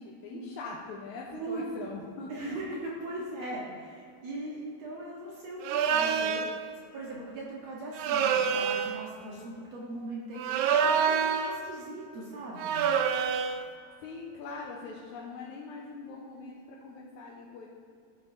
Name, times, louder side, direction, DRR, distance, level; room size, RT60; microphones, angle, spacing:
voice 1, 0.0-2.6 14.0-17.7, left 4 dB, 85° left, -3 dB, 2.2 m, -42 dB
voice 2, 1.3-2.0 2.3-6.7 6.9-12.8, right 2 dB, 65° right, -4 dB, 2.3 m, -39 dB
sound 1, 5.6-6.5 7.9-9.0 10.4-11.6 12.6-13.6, right 7 dB, 85° right, 2.0 m, -27 dB
12.5 x 8.9 x 2.7 m, 2.3 s
omnidirectional pair, 3.3 m